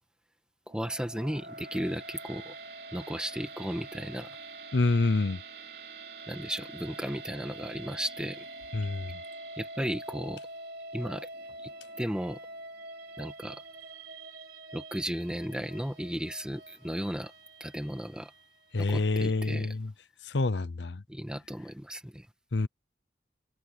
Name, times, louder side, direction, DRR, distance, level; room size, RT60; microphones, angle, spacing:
voice 1, 0.7-2.5 2.9-4.4 6.3-8.4 9.6-10.4 10.9-11.3 11.6-11.7 12.0-12.4 13.2-13.6 14.7-17.3 17.6-18.3 18.8-19.7 21.1-22.3, equal, 5° right, 1.4 m, -35 dB
sound 1, 0.7-18.9, right 2 dB, 60° right, 3.1 m, -45 dB
voice 2, 4.7-5.4 8.7-9.2 18.7-19.9 20.2-21.0 22.5-22.7, left 3 dB, 85° left, 0.7 m, -27 dB
head